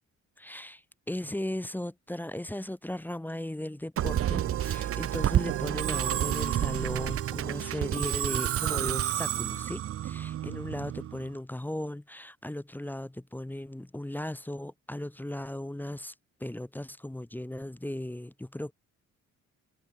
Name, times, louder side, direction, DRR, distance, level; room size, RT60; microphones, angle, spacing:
voice 1, 0.4-0.8 1.1-16.1 16.4-18.7, left 1 dB, 5° left, 0.8 m, -37 dB
Musical instrument, 4.0-11.3, right 12 dB, 50° right, 0.5 m, -30 dB
cardioid pair, 90°, 30 cm